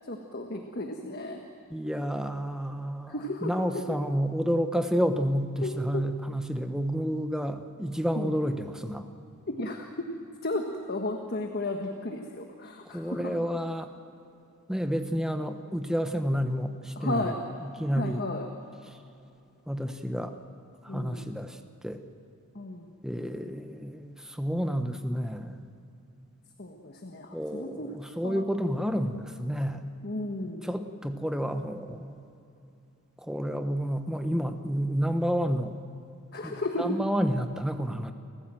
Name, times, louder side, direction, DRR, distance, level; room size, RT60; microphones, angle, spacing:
voice 1, 0.1-1.4 3.1-3.8 5.6-6.0 8.1-8.4 9.5-10.1 10.4-13.4 17.0-17.4 17.9-18.5 20.9-21.3 22.5-22.9 26.6-27.9 28.2-28.4 28.8-29.1 30.0-30.7 36.3-37.0, left 2 dB, 45° left, 3 dB, 1.4 m, -34 dB
voice 2, 1.7-3.1 3.4-9.1 12.9-13.9 14.7-17.3 17.8-18.2 19.7-20.3 20.8-21.6 21.8-22.0 23.0-25.6 27.3-29.8 30.6-32.1 33.3-35.7 36.4-38.1, equal, 5° right, 7 dB, 1.0 m, -30 dB
29.5 x 15.0 x 7.6 m, 2.8 s
head